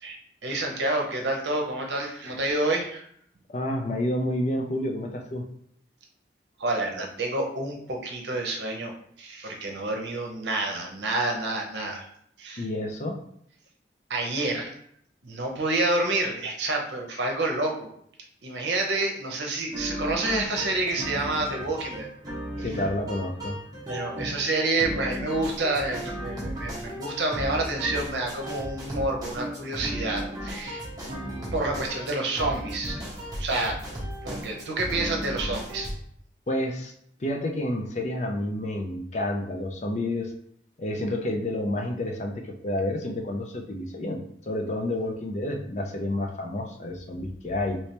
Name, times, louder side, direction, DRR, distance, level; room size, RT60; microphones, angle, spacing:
voice 1, 0.0-3.1 6.6-8.9 9.2-12.1 12.4-12.7 14.1-14.7 15.2-17.9 18.4-22.1 22.6-22.7 23.9-30.8 31.5-33.0 33.4-33.8 34.2-35.9, right 2 dB, 80° right, 1 dB, 0.7 m, -28 dB
voice 2, 3.5-5.5 12.6-13.2 22.6-23.6 36.5-36.9 37.2-40.3 40.8-47.8, left 1 dB, 40° left, 3 dB, 0.4 m, -29 dB
sound 1, 19.7-35.9, equal, 20° right, 1.0 m, -35 dB
3.2 x 3.0 x 2.9 m, 0.68 s
head